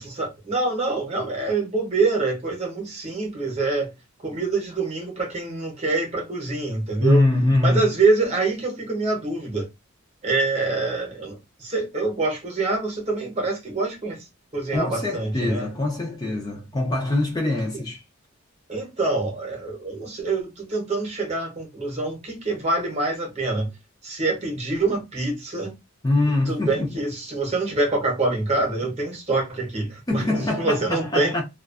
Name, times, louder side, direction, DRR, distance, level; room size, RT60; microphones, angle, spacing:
voice 1, 0.0-3.9 4.2-7.2 7.6-9.7 10.2-14.2 14.5-15.7 18.7-23.7 24.0-25.7 26.5-31.3, right 3 dB, 30° right, 0.9 m, -25 dB
voice 2, 7.0-7.9 14.7-18.0 26.0-27.0 28.8-28.9 30.1-31.4, left 2 dB, 20° left, 0.4 m, -23 dB
2.4 x 2.3 x 2.3 m
head